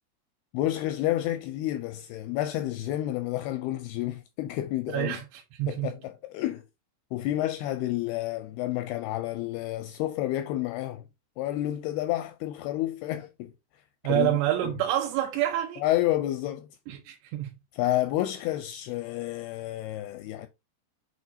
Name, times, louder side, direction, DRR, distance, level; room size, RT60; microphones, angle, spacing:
voice 1, 0.5-5.2 5.7-6.6 7.1-11.1 11.4-13.5 14.1-14.4 15.8-16.7 17.7-20.5, left 14 dB, 85° left, 2.3 m, -30 dB
voice 2, 4.9-6.0 14.0-15.8 16.9-17.6, right 13 dB, 85° right, 3.2 m, -28 dB
8.2 x 4.6 x 2.7 m
omnidirectional pair, 5.0 m